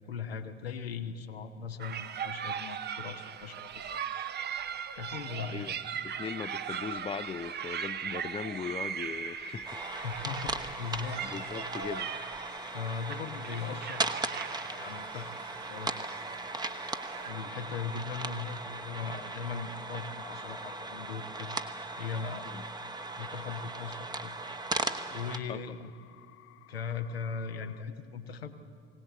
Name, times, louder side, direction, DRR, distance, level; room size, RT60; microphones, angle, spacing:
voice 1, 0.0-3.7 4.9-5.8 9.8-11.2 12.7-14.1 14.7-16.2 17.2-21.6 22.0-22.5 23.2-24.4 25.1-25.9 26.7-28.6, left 6 dB, 80° left, 6 dB, 1.2 m, -39 dB
sound 1, 1.8-17.3, right 8 dB, 35° right, 0.9 m, -39 dB
voice 2, 6.0-9.8 10.1-10.3 11.2-12.1 22.5-22.6 25.5-25.6, left 6 dB, 20° left, 16 dB, 0.6 m, -39 dB
sound 2, 9.0-27.8, left 12 dB, 45° left, 0.8 m, -55 dB
sound 3, 9.7-25.4, right 2 dB, 15° right, 1.1 m, -38 dB
22.0 x 18.0 x 8.3 m, 2.5 s
figure-of-eight pair, 60°, 30 cm